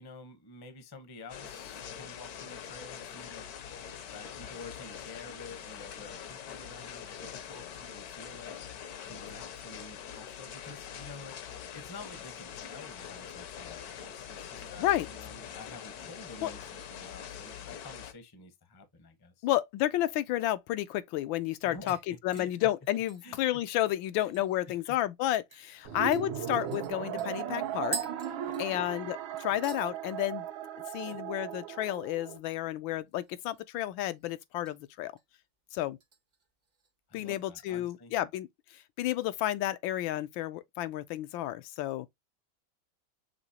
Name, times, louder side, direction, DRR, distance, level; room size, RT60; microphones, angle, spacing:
voice 1, 0.0-3.5 4.1-8.6 9.1-19.5 21.6-22.7 23.2-23.6 24.1-25.0 25.7-26.1 28.5-28.9 31.0-31.2 37.1-38.1, left 3 dB, 25° left, 0.5 m, -50 dB
sound 1, 1.3-18.1, left 8 dB, 65° left, 1.1 m, -44 dB
voice 2, 19.4-28.0 28.6-30.5 30.9-35.1 35.7-36.0 37.1-38.5 38.7-42.1, left 14 dB, 80° left, 1.3 m, -31 dB
sound 2, 20.8-20.9 21.3-21.6 21.9-24.7 25.0-25.1 25.5-25.7 26.1-29.1 29.4-29.9 30.2-30.6 30.9-31.0 33.1-33.7 34.0-34.8 35.2-35.5 36.0-36.9 37.3-37.4, right 4 dB, 70° right, 0.4 m, -45 dB
sound 3, 25.8-32.4, right 10 dB, 85° right, 1.5 m, -37 dB
6.1 x 2.9 x 2.7 m
omnidirectional pair, 2.1 m